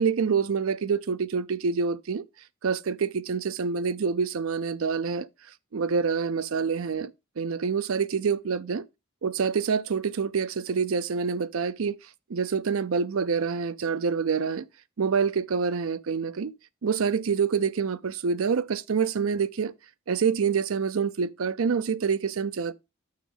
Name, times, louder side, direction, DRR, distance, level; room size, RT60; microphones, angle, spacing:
voice 1, 0.0-2.2 2.6-5.3 5.7-7.1 7.4-8.8 9.2-11.9 12.3-14.6 15.0-16.5 16.8-19.7 20.1-22.7, right 5 dB, 75° right, 0.5 m, -26 dB
6.5 x 6.1 x 3.9 m
head